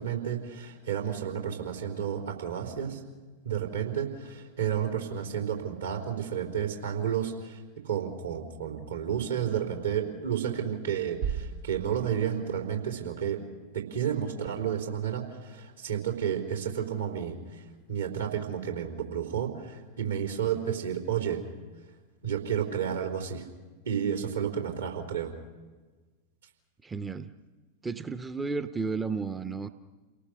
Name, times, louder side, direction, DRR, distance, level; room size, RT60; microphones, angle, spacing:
voice 1, 0.0-3.0 3.4-7.6 7.8-13.4 13.7-17.6 17.9-21.4 22.2-23.4 23.8-25.3, right 8 dB, 70° right, 1 dB, 4.3 m, -31 dB
sound 1, 11.2-13.0, right 7 dB, 50° right, 0.9 m, -37 dB
voice 2, 26.8-27.3 27.8-29.7, right 4 dB, 15° right, 11 dB, 0.8 m, -33 dB
29.5 x 18.5 x 6.5 m, 1.3 s
figure-of-eight pair, 90°, 0 cm